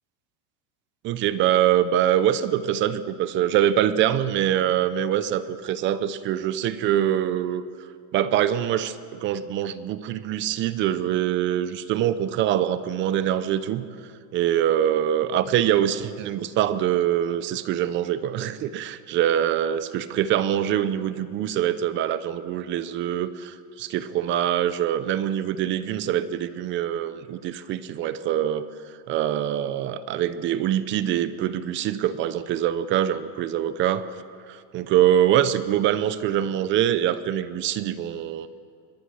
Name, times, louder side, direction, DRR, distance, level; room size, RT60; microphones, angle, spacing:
voice 1, 1.0-7.6 8.1-13.9 14.3-28.7 29.1-34.1 34.5-38.5, right 11 dB, 25° right, 14 dB, 0.6 m, -24 dB
23.0 x 22.0 x 6.4 m, 2.3 s
supercardioid pair, 165°, 46 cm